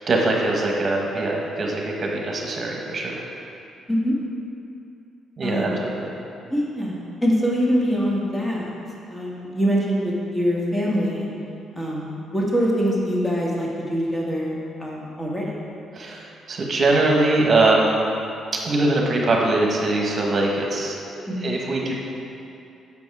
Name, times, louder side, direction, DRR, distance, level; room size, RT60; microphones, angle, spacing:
voice 1, 0.0-3.2 5.4-6.1 15.9-18.0 18.6-21.9, right 2 dB, 45° right, -1 dB, 1.3 m, -22 dB
voice 2, 5.4-5.9 6.5-8.7 9.1-11.3 11.7-14.5 14.8-15.5 21.3-21.5, equal, 10° left, -4 dB, 1.7 m, -24 dB
7.2 x 5.3 x 4.8 m, 2.6 s
cardioid pair, 90°, 0 cm